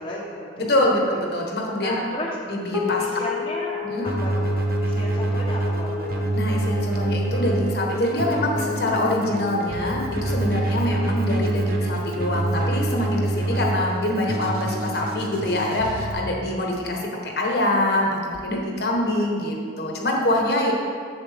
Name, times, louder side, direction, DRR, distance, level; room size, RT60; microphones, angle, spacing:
voice 1, 0.0-0.9 1.8-2.4 3.0-3.8 4.0-4.5 4.8-6.3, left 1 dB, 30° left, -5 dB, 0.8 m, -33 dB
voice 2, 0.6-2.0 2.5-3.0 3.8-4.1 6.3-20.7, left 1 dB, 60° left, 0 dB, 1.1 m, -24 dB
sound 1, 2.7-15.3, left 5 dB, 10° right, 0.6 m, -33 dB
Keyboard (musical), 4.0-16.1, right 2 dB, 50° right, 0.8 m, -26 dB
7.4 x 7.2 x 3.4 m, 2.1 s
head